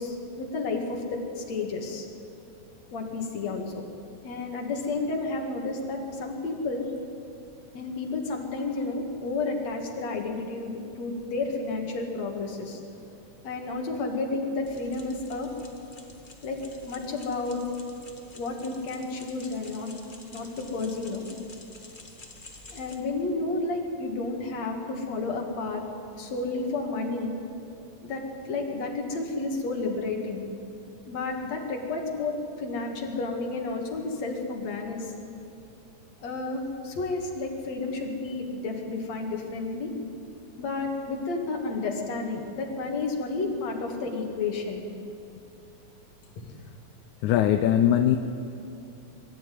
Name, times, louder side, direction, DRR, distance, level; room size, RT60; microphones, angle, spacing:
voice 1, 0.0-2.1 2.9-3.8 4.2-6.9 7.7-12.8 13.4-15.5 16.4-17.7 18.3-19.9 20.3-21.2 22.7-25.8 26.1-27.4 28.0-30.4 31.1-35.1 36.2-39.9 40.6-44.8 46.4-46.5, left 3 dB, 55° left, 1 dB, 3.4 m, -31 dB
sound 1, 14.7-23.0, left 3 dB, 25° left, 1.2 m, -50 dB
voice 2, 47.2-48.2, left 10 dB, 75° left, 7 dB, 2.0 m, -20 dB
23.0 x 13.0 x 9.6 m, 2.8 s
omnidirectional pair, 3.7 m